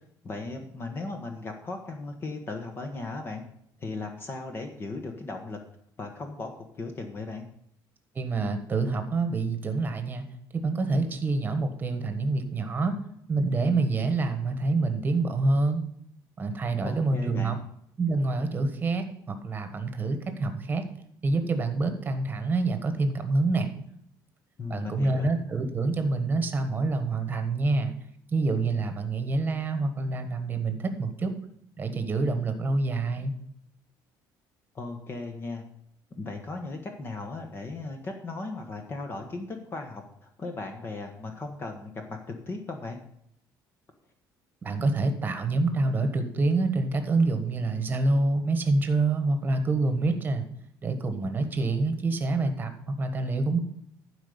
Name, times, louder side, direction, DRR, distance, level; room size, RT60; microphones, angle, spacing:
voice 1, 0.2-3.4 3.8-5.6 6.0-7.5 16.8-17.6 24.6-25.3 34.7-35.6 36.1-42.2 42.5-43.0, left 3 dB, 30° left, 4 dB, 1.2 m, -37 dB
voice 2, 8.1-10.3 10.5-13.0 13.3-15.8 16.4-17.6 18.0-20.8 21.2-23.7 24.7-27.9 28.3-31.3 31.8-33.3 44.6-50.4 50.8-53.6, right 3 dB, 25° right, 8 dB, 1.3 m, -27 dB
12.0 x 5.0 x 6.9 m, 0.71 s
cardioid pair, 150°, 8 cm